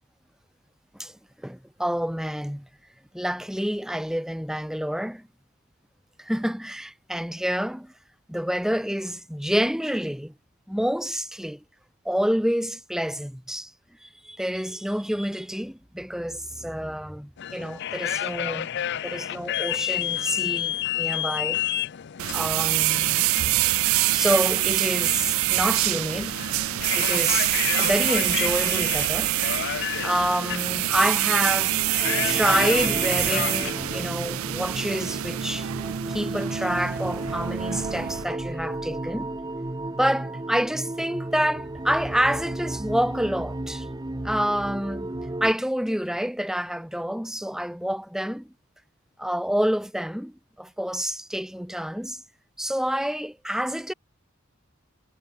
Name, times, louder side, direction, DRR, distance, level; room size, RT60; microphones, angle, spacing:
voice 1, 1.4-2.7 3.1-5.2 6.2-7.9 8.3-10.3 10.7-11.6 12.0-13.7 14.0-18.7 19.0-21.6 22.3-23.3 24.1-26.4 26.9-29.3 30.0-31.8 32.2-35.7 36.1-39.3 40.0-43.9 44.2-45.1 45.4-48.5 49.2-52.2 52.6-53.9, equal, ahead, 1.3 m, -28 dB
sound 1, 17.4-34.0, left 11 dB, 55° left, 0.4 m, -31 dB
sound 2, 22.2-38.2, right 16 dB, 80° right, 0.4 m, -25 dB
sound 3, 32.0-45.5, right 1 dB, 20° right, 0.8 m, -33 dB
head